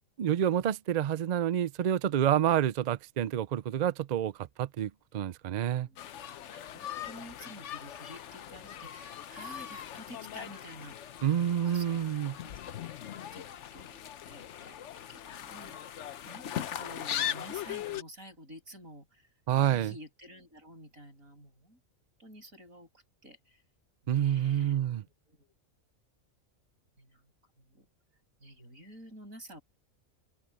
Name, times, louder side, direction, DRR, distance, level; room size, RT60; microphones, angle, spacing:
voice 1, 0.2-5.9 11.2-12.4 19.5-19.9 24.1-25.0, right 10 dB, 70° right, 0.4 m, -28 dB
voice 2, 5.7-6.2 6.5-11.3 11.7-13.5 13.7-19.3 19.6-21.8 22.2-23.6 24.0-25.5 27.0-27.3 27.6-27.9 28.4-29.6, equal, 90° right, 7.2 m, -51 dB
sound 1, 6.0-18.0, left 10 dB, 65° left, 1.0 m, -40 dB
open air
omnidirectional pair, 1.4 m